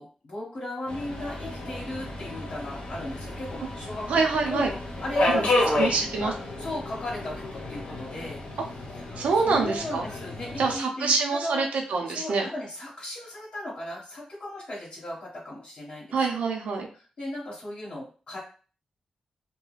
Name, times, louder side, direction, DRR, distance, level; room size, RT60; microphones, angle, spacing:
voice 1, 0.0-4.2 4.5-6.3 6.6-8.4 8.9-11.7 12.1-16.2 16.4-16.5 16.9-18.4, left 1 dB, 55° left, -6 dB, 1.1 m, -36 dB
Subway metro underground, 0.9-10.8, left 2 dB, 70° left, 0.8 m, -31 dB
voice 2, 4.1-4.7 5.3-5.4 5.8-6.3 9.2-10.0 10.6-12.5 16.1-16.9, right 4 dB, 85° right, 2 dB, 0.6 m, -25 dB
2.3 x 2.2 x 3.2 m, 0.37 s
cardioid pair, 80°, 2 cm